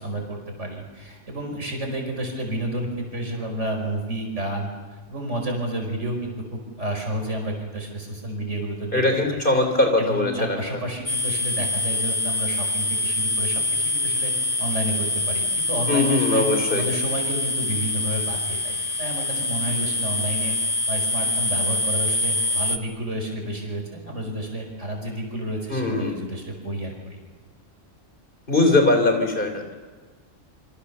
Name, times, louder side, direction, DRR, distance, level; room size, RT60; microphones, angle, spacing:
voice 1, 0.0-4.7 5.1-9.0 9.3-9.4 10.0-14.3 14.6-16.4 16.7-20.5 20.9-27.2, right 1 dB, 65° right, 2 dB, 5.4 m, -30 dB
voice 2, 8.9-10.6 15.9-16.8 25.7-26.2 28.5-29.7, left 2 dB, 40° left, 5 dB, 3.8 m, -21 dB
sound 1, 11.1-22.8, left 2 dB, 20° left, 1.1 m, -25 dB
28.0 x 25.5 x 6.9 m, 1.3 s
omnidirectional pair, 1.3 m